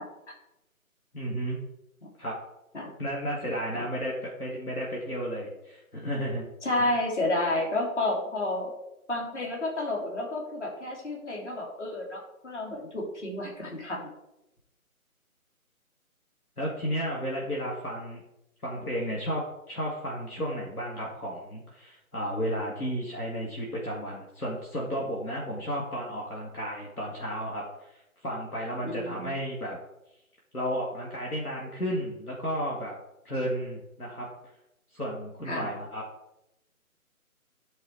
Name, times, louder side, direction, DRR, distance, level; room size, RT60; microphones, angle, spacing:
voice 1, 1.1-1.6 2.2-2.3 3.0-6.5 6.8-6.9 16.6-18.2 18.6-27.9 28.2-29.8 30.5-33.0 33.2-34.3 34.9-36.0, equal, 85° left, -4 dB, 2.4 m, -33 dB
voice 2, 6.6-8.7 9.1-14.1 28.8-29.3 35.4-35.7, left 2 dB, 50° left, -1 dB, 3.0 m, -30 dB
11.5 x 4.8 x 4.6 m, 0.89 s
figure-of-eight pair, 150°, 44 cm